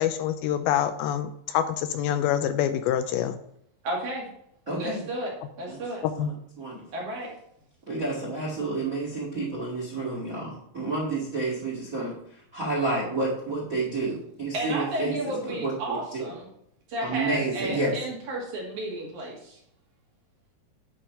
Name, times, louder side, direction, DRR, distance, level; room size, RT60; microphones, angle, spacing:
voice 1, 0.0-3.4 6.2-6.3, left 10 dB, 85° left, 10 dB, 2.3 m, -26 dB
voice 2, 3.8-4.3 4.7-6.0 6.9-7.3 14.5-16.5 16.9-19.6, right 1 dB, 55° right, -3 dB, 3.5 m, -32 dB
voice 3, 4.7-5.0 5.7-5.8 6.2-6.3 6.6-6.8 7.9-12.1 12.5-15.1 15.4-16.3 17.0-17.9, right 2 dB, 35° right, -3 dB, 1.3 m, -30 dB
9.9 x 4.6 x 5.6 m, 0.72 s
omnidirectional pair, 4.6 m